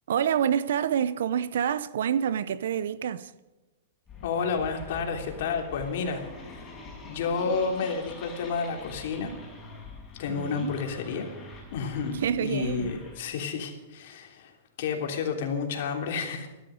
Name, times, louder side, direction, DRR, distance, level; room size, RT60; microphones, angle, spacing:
voice 1, 0.1-3.3 10.3-10.8 12.1-12.9, right 9 dB, 80° right, 0.8 m, -27 dB
sound 1, 4.1-13.5, left 3 dB, 20° left, 6.0 m, -45 dB
voice 2, 4.2-6.2 6.5-9.3 10.2-11.3 11.7-16.5, left 5 dB, 65° left, 3.2 m, -31 dB
15.5 x 12.5 x 6.5 m
hypercardioid pair, 140°, 0 cm